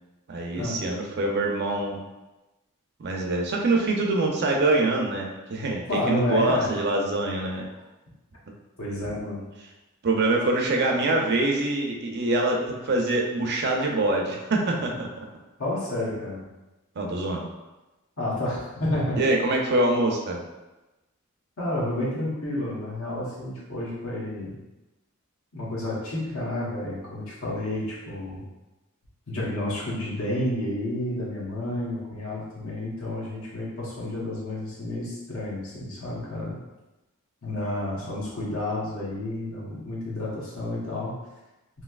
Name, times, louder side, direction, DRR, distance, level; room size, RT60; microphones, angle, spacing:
voice 1, 0.3-2.0 3.0-7.7 10.0-15.3 17.0-17.5 19.2-20.4, right 2 dB, 50° right, 0 dB, 0.5 m, -25 dB
voice 2, 5.9-6.7 8.8-9.5 15.6-16.5 18.2-19.2 21.6-24.6 25.5-28.4 29.3-36.6 37.4-41.1, left 1 dB, 80° left, -6 dB, 1.0 m, -30 dB
3.1 x 2.8 x 2.4 m, 1.1 s
head